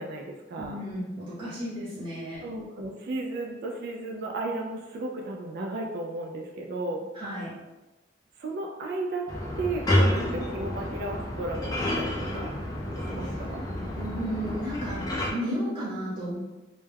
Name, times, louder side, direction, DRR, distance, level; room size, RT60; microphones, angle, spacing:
voice 1, 0.0-0.8 2.4-7.1 8.4-9.3 9.6-12.5 13.0-13.6, right 2 dB, 55° right, 1 dB, 0.3 m, -34 dB
voice 2, 0.6-2.4 7.1-7.5 13.9-16.4, equal, 25° right, -10 dB, 0.7 m, -33 dB
sound 1, 9.3-15.3, left 1 dB, 20° left, 0.4 m, -29 dB
2.2 x 2.1 x 3.2 m, 1.1 s
head